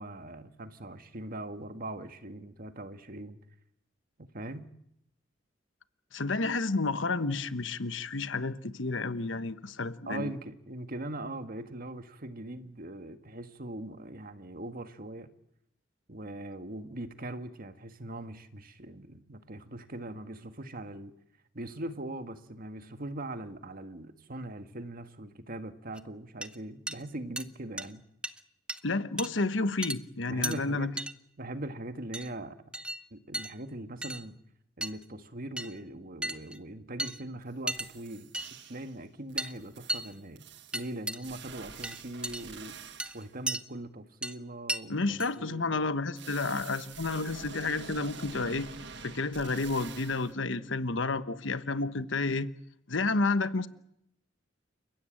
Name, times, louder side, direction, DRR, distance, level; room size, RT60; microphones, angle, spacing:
voice 1, 0.0-3.4 4.3-4.7 10.0-15.3 16.1-21.1 21.5-28.0 30.3-30.9 31.4-32.6 33.1-34.4 34.8-38.3 38.7-40.4 40.7-42.8 43.1-45.8, right 1 dB, 50° right, 1.7 m, -41 dB
voice 2, 6.1-10.3 28.8-30.9 44.9-48.7 49.0-52.5 52.9-53.7, left 3 dB, 90° left, 1.2 m, -30 dB
sound 1, 26.0-26.1 26.4-26.6 26.9-27.0 27.4-27.5 27.8-27.9 28.2-28.4 28.7-28.8 29.2-29.3 29.8-30.0 30.4-30.6 31.0-31.1 32.1-32.3 32.7-33.0 33.3-33.5 34.0-34.2 34.8-35.0 35.6-35.8 36.2-36.6 37.0-37.2 37.7-37.9 38.3-38.5 39.4-39.5 39.9-40.1 40.7-41.2 41.8-42.4 43.0-43.6 44.2-44.4 44.7-44.8 45.2-45.3, right 1 dB, 5° right, 0.9 m, -34 dB
sound 2, 37.4-37.5 37.7-39.0 39.3-43.3 46.2-50.3, right 5 dB, 65° right, 1.6 m, -47 dB
29.5 x 16.0 x 8.8 m
head